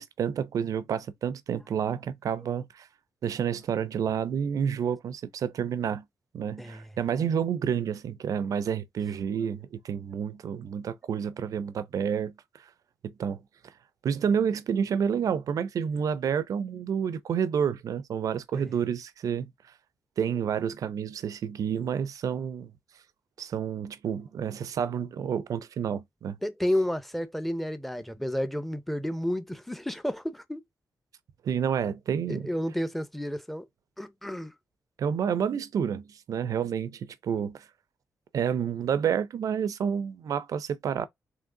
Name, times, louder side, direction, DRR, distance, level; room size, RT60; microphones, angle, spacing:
voice 1, 0.0-2.9 3.2-6.0 6.3-12.3 13.0-13.4 14.0-19.5 20.2-22.7 23.4-26.4 31.4-32.5 35.0-37.6 38.3-41.1, right 7 dB, 70° right, 0.5 m, -29 dB
voice 2, 6.6-6.9 18.5-18.7 26.4-30.6 32.3-33.7 34.0-34.5, left 1 dB, 5° left, 0.6 m, -31 dB
3.6 x 3.2 x 3.7 m
wide cardioid pair, 115°, 6 cm